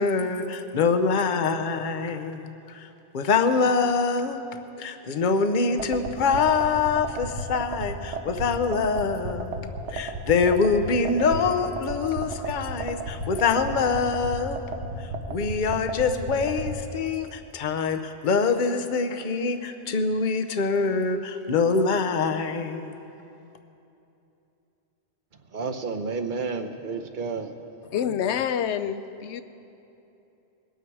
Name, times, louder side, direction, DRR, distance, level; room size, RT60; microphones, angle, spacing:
voice 1, 0.0-2.9 3.1-4.4 4.8-14.6 15.0-23.1, left 5 dB, 50° left, 0.8 m, -25 dB
sound 1, 5.8-16.7, right 3 dB, 85° right, 1.4 m, -32 dB
voice 2, 25.5-27.5, right 4 dB, 50° right, 0.9 m, -31 dB
voice 3, 27.8-29.4, left 8 dB, 80° left, 0.9 m, -27 dB
21.5 x 9.2 x 4.7 m
omnidirectional pair, 1.1 m